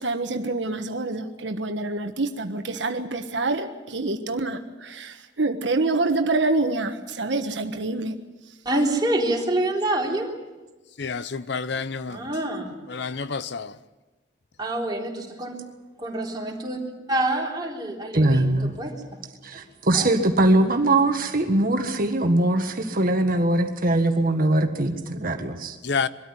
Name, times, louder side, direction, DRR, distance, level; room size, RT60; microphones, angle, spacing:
voice 1, 0.0-8.2, right 2 dB, 75° right, 1.4 m, -26 dB
voice 2, 8.7-10.3 12.1-12.7 14.6-15.6 16.0-16.8 17.1-19.0 19.9-20.1, right 1 dB, 25° right, 3.8 m, -26 dB
voice 3, 11.0-12.2 13.0-13.7 25.9-26.1, left 5 dB, 70° left, 0.7 m, -28 dB
voice 4, 18.1-18.8 19.4-25.8, right 2 dB, 50° right, 1.6 m, -21 dB
23.0 x 13.5 x 9.8 m
head